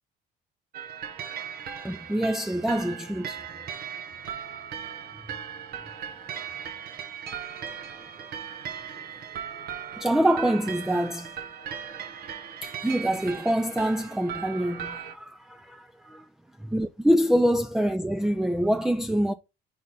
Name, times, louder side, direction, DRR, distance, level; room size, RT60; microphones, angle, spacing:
sound 1, 0.7-15.1, right 8 dB, 65° right, 1.3 m, -38 dB
voice 1, 1.8-3.7 9.9-11.3 12.6-16.3 16.6-19.3, equal, 5° right, 0.4 m, -25 dB
4.8 x 4.1 x 5.4 m
cardioid pair, 110°, 17 cm